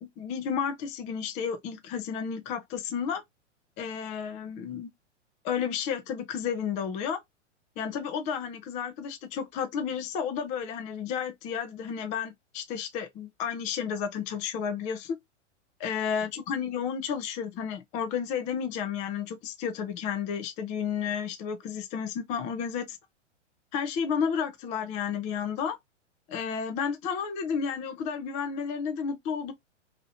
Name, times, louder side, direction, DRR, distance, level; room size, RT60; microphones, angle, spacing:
voice 1, 0.0-3.2 3.8-4.9 5.4-7.2 7.8-15.2 15.8-23.0 23.7-25.8 26.3-29.5, left 7 dB, 20° left, 0.4 m, -32 dB
2.9 x 2.7 x 2.6 m
figure-of-eight pair, 105°, 36 cm